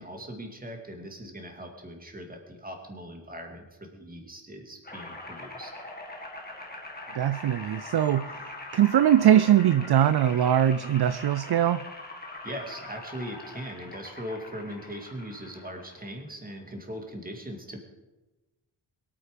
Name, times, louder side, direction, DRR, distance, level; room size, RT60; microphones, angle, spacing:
voice 1, 0.0-5.7 12.4-17.8, equal, 20° right, 3 dB, 2.4 m, -40 dB
sound 1, 4.8-16.2, left 2 dB, 20° left, 2.2 m, -42 dB
voice 2, 7.1-11.8, right 10 dB, 55° right, 13 dB, 0.5 m, -22 dB
22.0 x 8.8 x 5.2 m, 1.1 s
wide cardioid pair, 155°, 47 cm